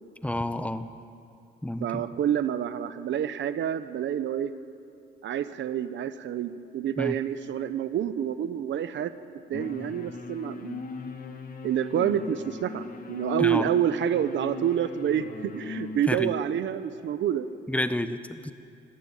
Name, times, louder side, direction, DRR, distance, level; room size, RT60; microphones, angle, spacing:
voice 1, 0.2-0.9 1.6-2.0 7.0-7.2 13.4-13.7 16.1-16.3 17.7-18.5, left 1 dB, 5° left, 10 dB, 1.1 m, -29 dB
voice 2, 1.8-4.5 5.2-10.8 11.6-17.5, right 9 dB, 70° right, 12 dB, 1.0 m, -28 dB
sound 1, 9.5-16.0, left 4 dB, 45° left, 2.2 m, -38 dB
24.5 x 15.0 x 9.0 m, 2.6 s
cardioid pair, 90°, 20 cm